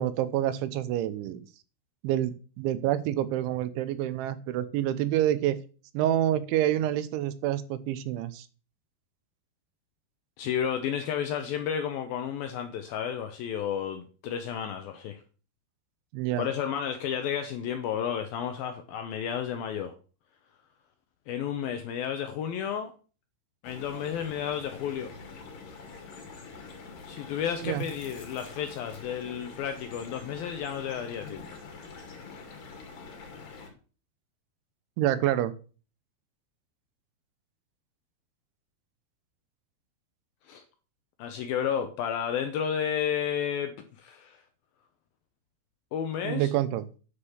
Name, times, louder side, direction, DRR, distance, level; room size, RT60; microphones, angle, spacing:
voice 1, 0.0-1.5 2.0-5.6 5.9-8.5 16.1-16.5 27.6-27.8 35.0-35.5 46.2-46.8, right 12 dB, 80° right, 3.1 m, -27 dB
voice 2, 10.4-15.2 16.4-19.9 21.3-22.9 23.6-25.1 27.1-31.6 40.5-40.6 41.2-44.4 45.9-46.5, left 8 dB, 90° left, 2.0 m, -32 dB
sound 1, 23.6-33.7, left 4 dB, 50° left, 3.7 m, -45 dB
9.9 x 6.7 x 7.2 m
omnidirectional pair, 5.6 m